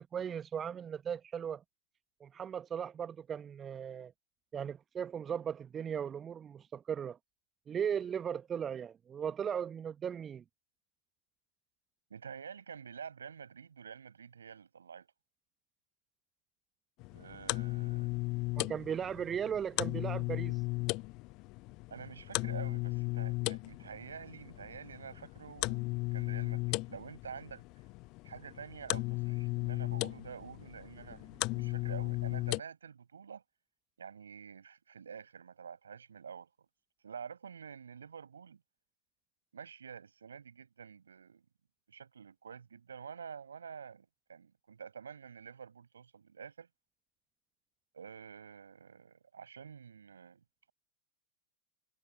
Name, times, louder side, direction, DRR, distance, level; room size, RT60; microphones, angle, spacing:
voice 1, 0.0-1.6 2.2-4.1 4.5-7.2 7.7-10.4 18.6-20.6, right 8 dB, 25° right, 0.9 m, -37 dB
voice 2, 12.1-15.1 17.1-18.2 18.5-18.6 21.9-27.6 28.2-33.4 34.0-36.7 37.0-38.6 39.5-41.5 41.9-46.7 47.9-50.7, right 7 dB, 70° right, 5.2 m, -48 dB
sound 1, 17.0-32.6, left 23 dB, 40° left, 0.8 m, -36 dB
figure-of-eight pair, 90°, 0 cm